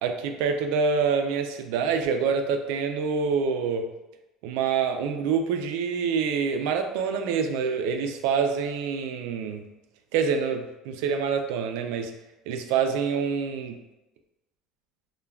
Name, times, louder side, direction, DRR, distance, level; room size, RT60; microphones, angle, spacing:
voice 1, 0.0-3.9 4.4-9.6 10.1-12.1 12.5-13.8, right 6 dB, 75° right, 5 dB, 0.3 m, -26 dB
3.3 x 2.2 x 2.2 m, 0.96 s
cardioid pair, 175°, 0 cm